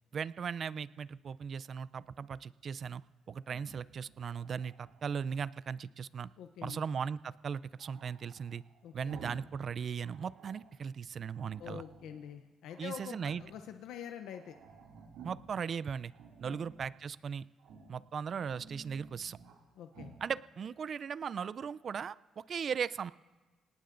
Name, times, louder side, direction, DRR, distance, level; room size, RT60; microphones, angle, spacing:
voice 1, 0.1-3.0 3.3-6.3 6.6-8.6 8.9-11.8 12.8-13.4 15.2-16.1 16.4-17.5 17.9-19.4 20.2-23.1, right 6 dB, 50° right, 17 dB, 0.4 m, -38 dB
Growling, 3.4-5.4 7.8-9.6 9.9-10.8 11.3-12.2 12.7-13.7 14.0-14.1 14.3-15.6 16.1-16.9 17.6-18.0 18.4-19.6 19.9-20.2, right 4 dB, 90° right, 2.3 m, -54 dB
voice 2, 6.4-6.8 8.8-9.2 11.6-14.5 16.4-16.6 19.8-20.1, left 9 dB, 85° left, 6 dB, 0.6 m, -46 dB
26.5 x 19.0 x 2.6 m, 1.2 s
cardioid pair, 90°, 0 cm